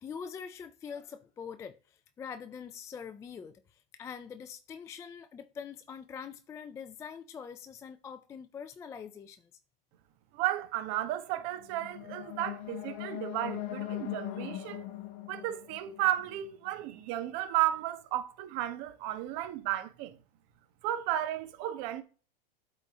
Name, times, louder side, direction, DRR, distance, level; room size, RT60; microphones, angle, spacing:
voice 1, 0.0-9.5, left 7 dB, 10° left, 0.3 m, -44 dB
voice 2, 10.3-14.8 15.3-20.1 20.8-22.0, right 13 dB, 45° right, 1.3 m, -33 dB
sound 1, 11.6-16.7, left 14 dB, 45° left, 1.1 m, -40 dB
8.1 x 4.3 x 3.6 m
hypercardioid pair, 115°, 30 cm